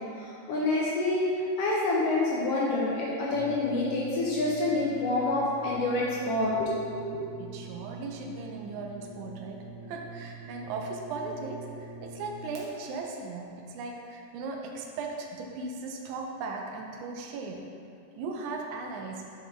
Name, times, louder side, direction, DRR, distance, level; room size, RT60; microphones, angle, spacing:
voice 1, 0.2-1.2 1.6-7.3, left 2 dB, 75° left, -5 dB, 1.4 m, -27 dB
Brass instrument, 3.3-12.6, right 3 dB, 65° right, 1.5 m, -45 dB
voice 2, 7.4-17.7 18.2-19.3, right 3 dB, 80° right, 1 dB, 1.9 m, -37 dB
6.5 x 4.9 x 3.3 m, 2.5 s
omnidirectional pair, 3.3 m